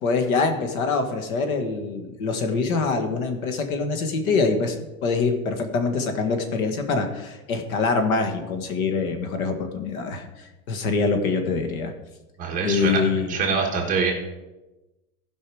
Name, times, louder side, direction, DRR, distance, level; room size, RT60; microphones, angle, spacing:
voice 1, 0.0-4.8 5.0-10.3 10.7-11.9 12.6-13.5, left 4 dB, 70° left, 6 dB, 1.7 m, -24 dB
voice 2, 12.4-13.0 13.3-14.1, right 5 dB, 20° right, 0 dB, 1.4 m, -24 dB
15.5 x 5.4 x 4.8 m, 1.1 s
supercardioid pair, 170°, 44 cm